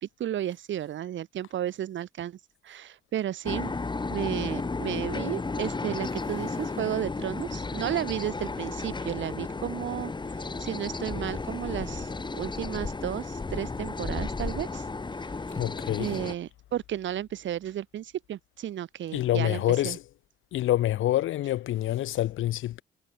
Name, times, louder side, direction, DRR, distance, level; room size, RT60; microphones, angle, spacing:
voice 1, 0.0-2.4 2.6-3.7 4.1-10.1 10.6-12.1 12.4-14.8 16.0-20.0, right 11 dB, 70° right, 4.1 m, -33 dB
sound 1, 3.4-16.3, left 3 dB, 20° left, 2.4 m, -33 dB
voice 2, 15.5-16.2 19.1-20.0 20.5-22.8, left 14 dB, 85° left, 6.5 m, -27 dB
cardioid pair, 90°, 20 cm